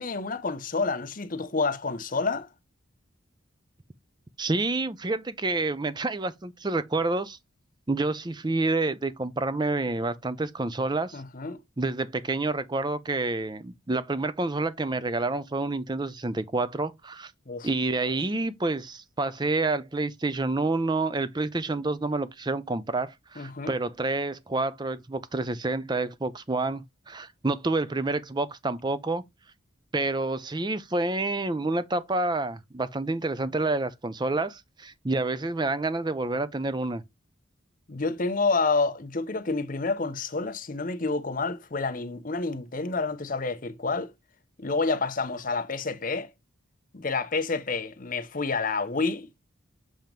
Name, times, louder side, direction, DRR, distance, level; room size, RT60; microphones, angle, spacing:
voice 1, 0.0-2.5 11.1-11.6 17.5-17.7 23.4-23.7 37.9-44.1 44.6-46.3 46.9-49.3, left 3 dB, 40° left, 0.8 m, -29 dB
voice 2, 4.4-7.4 7.9-11.2 11.8-17.3 17.6-29.2 29.9-37.0, right 2 dB, 20° right, 0.5 m, -28 dB
7.5 x 3.0 x 5.1 m
head